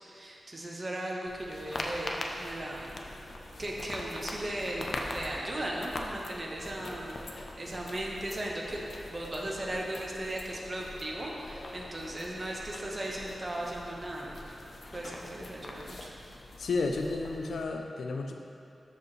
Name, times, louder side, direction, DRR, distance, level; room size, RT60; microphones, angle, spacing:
voice 1, 0.0-3.0 3.6-8.8 9.1-14.4 14.9-16.1, right 1 dB, 30° right, -2 dB, 1.2 m, -37 dB
sound 1, 1.3-17.6, left 2 dB, 50° left, 0.7 m, -42 dB
voice 2, 16.6-18.3, left 3 dB, 90° left, 3 dB, 0.4 m, -32 dB
13.0 x 5.0 x 3.2 m, 2.7 s
wide cardioid pair, 120°, 0 cm